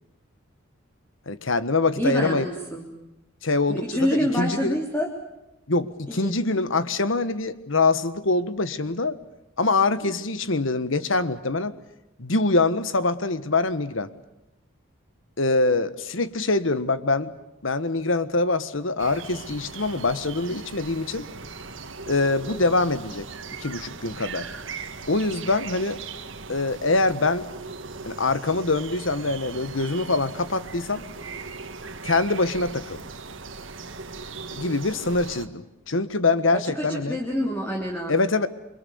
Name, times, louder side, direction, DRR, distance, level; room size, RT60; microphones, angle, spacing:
voice 1, 1.3-2.4 3.4-4.8 5.7-9.2 9.6-11.7 12.2-14.1 15.4-17.3 17.6-21.2 22.1-23.3 23.6-24.5 25.1-26.0 26.5-27.5 28.0-31.0 32.0-33.0 34.5-37.2 38.1-38.5, left 3 dB, 75° left, 13 dB, 1.5 m, -24 dB
voice 2, 2.0-2.9 3.7-5.1 6.1-6.3 36.5-38.1, equal, 10° left, -1 dB, 3.4 m, -27 dB
sound 1, 19.0-35.5, right 4 dB, 70° right, 1.9 m, -39 dB
28.5 x 24.0 x 7.1 m, 0.93 s
head